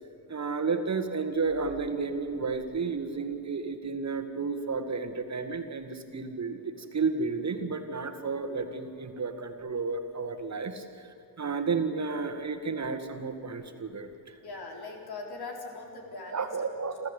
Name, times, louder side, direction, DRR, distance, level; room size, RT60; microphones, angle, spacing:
voice 1, 0.3-10.8 11.4-14.4 16.3-17.1, right 4 dB, 40° right, 7 dB, 1.8 m, -32 dB
voice 2, 14.4-17.1, left 3 dB, 60° left, 1 dB, 4.5 m, -41 dB
27.5 x 13.5 x 8.3 m, 2.9 s
cardioid pair, 80°, 42 cm